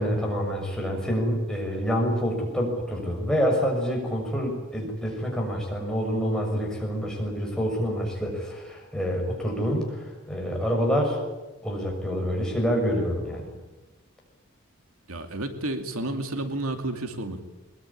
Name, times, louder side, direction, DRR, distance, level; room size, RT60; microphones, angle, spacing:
voice 1, 0.0-11.2 11.6-13.5, equal, 5° left, -1 dB, 6.4 m, -27 dB
voice 2, 15.1-17.4, right 2 dB, 85° right, 6 dB, 2.6 m, -31 dB
22.5 x 21.5 x 9.9 m, 1.1 s
head